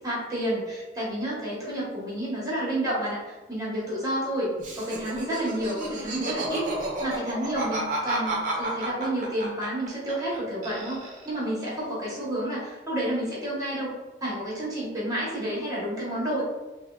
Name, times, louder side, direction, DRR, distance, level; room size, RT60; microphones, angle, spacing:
voice 1, 0.0-4.5 4.7-6.7 7.0-13.9 14.2-16.4, right 1 dB, 20° right, -7 dB, 0.9 m, -30 dB
Laughter, 4.6-10.4 10.6-11.4, right 2 dB, 45° right, 0.6 m, -32 dB
3.4 x 2.1 x 2.2 m, 1.1 s
head